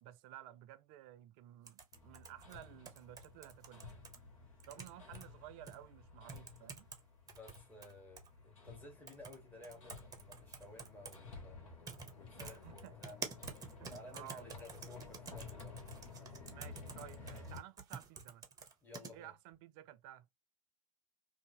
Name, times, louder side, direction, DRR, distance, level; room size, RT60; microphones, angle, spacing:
voice 1, 0.0-4.1 4.7-6.9 12.4-12.9 13.8-14.5 16.5-18.5 19.1-20.3, right 13 dB, 45° right, 0.4 m, -54 dB
sound 1, 1.7-4.2 4.6-5.3 5.7-5.8 6.3-7.0 7.3-8.3 9.1-9.4 9.6-11.2 11.9-12.1 12.4-19.1, right 5 dB, 20° right, 0.7 m, -49 dB
Hammer, 1.9-17.6, left 4 dB, 65° left, 1.1 m, -53 dB
voice 2, 7.3-11.6 12.1-13.2 13.9-15.8 18.8-19.3, left 2 dB, 10° left, 1.3 m, -55 dB
2.6 x 2.5 x 2.7 m
figure-of-eight pair, 80°, 18 cm